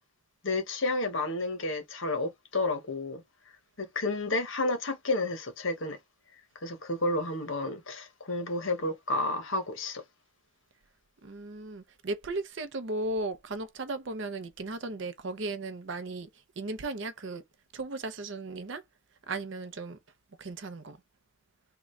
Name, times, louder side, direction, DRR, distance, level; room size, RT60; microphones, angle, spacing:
voice 1, 0.4-3.2 3.8-6.0 6.6-10.0, left 2 dB, 65° left, 1.2 m, -31 dB
voice 2, 11.2-16.3 16.6-17.4 17.7-18.8 19.3-20.0 20.4-21.0, right 2 dB, 60° right, 0.6 m, -36 dB
3.7 x 2.3 x 3.2 m
head